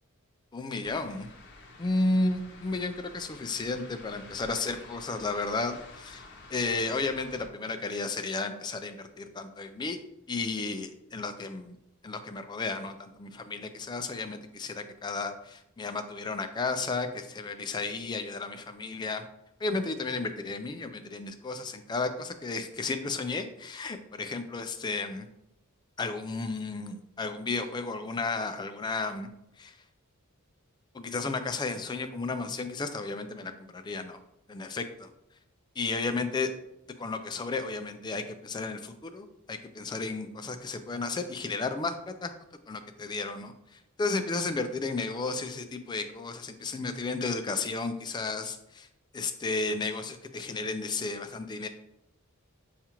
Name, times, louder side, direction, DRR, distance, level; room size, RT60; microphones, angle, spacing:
voice 1, 0.5-1.3 1.8-10.0 10.3-11.8 12.0-19.3 19.6-25.3 26.0-29.3 29.6-29.8 30.9-34.2 34.5-35.1 35.8-36.5 37.0-42.3 42.7-48.9 49.1-51.7, left 3 dB, 20° left, 8 dB, 0.3 m, -33 dB
sound 1, 0.8-7.5, left 3 dB, 55° left, 0.7 m, -50 dB
6.8 x 2.4 x 2.9 m, 0.83 s
head